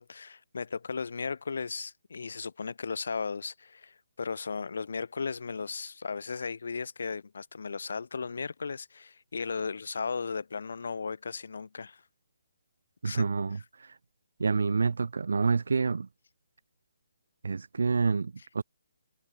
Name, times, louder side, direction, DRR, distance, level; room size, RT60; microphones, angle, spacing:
voice 1, 0.0-12.0 13.0-13.3, left 5 dB, 70° left, 3.9 m, -36 dB
voice 2, 13.0-14.0 14.4-16.1 17.4-18.6, right 4 dB, 75° right, 0.6 m, -28 dB
hypercardioid pair, 150°, 0 cm